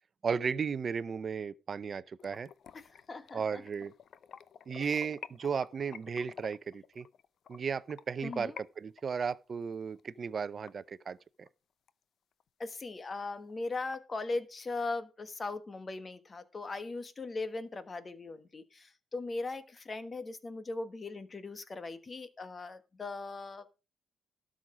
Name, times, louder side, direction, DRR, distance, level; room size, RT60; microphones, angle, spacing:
voice 1, 0.2-2.5 3.3-3.9 4.7-7.1 7.5-11.5, right 6 dB, 45° right, 0.6 m, -35 dB
sound 1, 2.2-8.6 9.0-11.5 11.9-12.0 12.4-12.5 12.8-12.9 13.2-14.0, left 8 dB, 60° left, 0.6 m, -51 dB
voice 2, 2.7-3.6 4.7-5.0 8.2-8.6 12.6-23.7, left 3 dB, 30° left, 1.3 m, -39 dB
12.5 x 6.3 x 5.0 m
cardioid pair, 90°, 0 cm